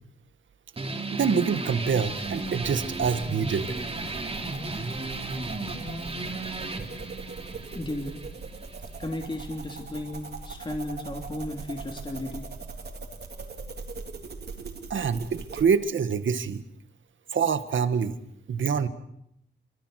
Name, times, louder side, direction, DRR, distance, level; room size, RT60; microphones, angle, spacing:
sound 1, 0.8-9.8, right 2 dB, 30° right, 3.6 m, -35 dB
voice 1, 1.1-3.7 14.9-16.6 17.3-18.2 18.5-18.9, right 6 dB, 75° right, 10 dB, 1.9 m, -25 dB
sound 2, 2.0-15.7, right 4 dB, 55° right, 3.7 m, -41 dB
voice 2, 7.7-8.1 9.0-12.4, left 1 dB, 25° left, 3 dB, 3.1 m, -34 dB
29.0 x 25.0 x 6.6 m, 0.76 s
wide cardioid pair, 155°, 20 cm